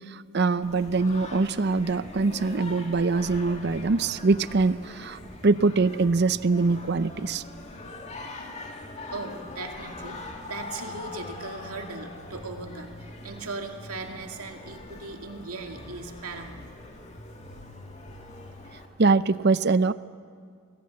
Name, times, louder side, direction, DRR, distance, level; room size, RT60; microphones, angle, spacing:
voice 1, 0.1-7.4 19.0-19.9, right 3 dB, 50° right, 15 dB, 0.6 m, -23 dB
Singing, 0.6-18.9, left 2 dB, 30° left, 2.2 m, -42 dB
voice 2, 9.1-16.7, right 3 dB, 90° right, 3 dB, 2.2 m, -38 dB
26.0 x 20.0 x 7.7 m, 2.1 s
head